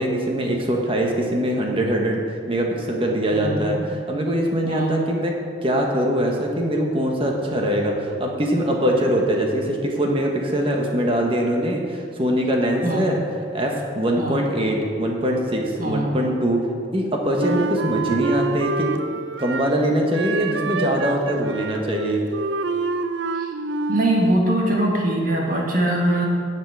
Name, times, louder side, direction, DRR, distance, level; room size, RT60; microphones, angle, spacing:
voice 1, 0.0-16.7 16.9-22.2, equal, 30° right, 0 dB, 1.4 m, -23 dB
voice 2, 3.3-3.8 4.6-4.9 12.8-13.1 14.2-14.4 15.8-16.1 23.4-23.5 23.9-26.3, right 1 dB, 45° right, -2 dB, 1.9 m, -22 dB
Wind instrument woodwind instrument, 17.4-19.8 20.1-24.2, right 3 dB, 80° right, 0.5 m, -27 dB
10.0 x 7.5 x 6.1 m, 2.2 s
head